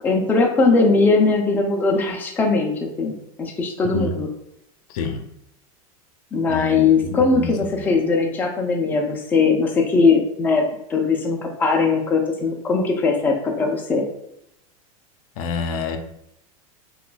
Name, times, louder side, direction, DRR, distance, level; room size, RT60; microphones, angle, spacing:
voice 1, 0.0-4.3 6.3-10.6 10.9-14.0, left 4 dB, 10° left, 1 dB, 0.4 m, -20 dB
voice 2, 3.8-4.1 4.9-5.2 6.5-7.9 15.4-16.0, left 4 dB, 75° left, 6 dB, 0.5 m, -28 dB
2.3 x 2.3 x 3.8 m, 0.79 s
supercardioid pair, 140°, 19 cm